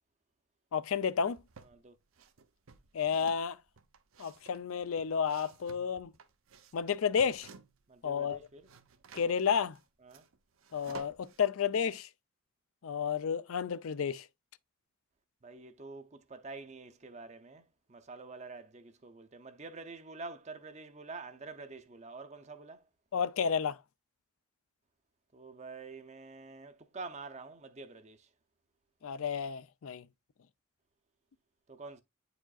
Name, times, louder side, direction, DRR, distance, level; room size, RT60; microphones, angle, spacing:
voice 1, 0.7-1.4 2.9-3.6 4.2-6.1 6.7-7.5 8.0-8.4 9.1-9.8 10.7-12.1 12.8-14.3 23.1-23.8 29.0-30.0, left 7 dB, 70° left, 0.4 m, -31 dB
sound 1, 1.0-1.8 2.1-7.9 8.2-11.4, right 5 dB, 70° right, 0.7 m, -54 dB
voice 2, 7.9-8.7 10.0-10.2 15.4-22.8 25.3-28.3 31.7-32.0, right 3 dB, 30° right, 0.5 m, -47 dB
8.8 x 4.9 x 2.3 m
head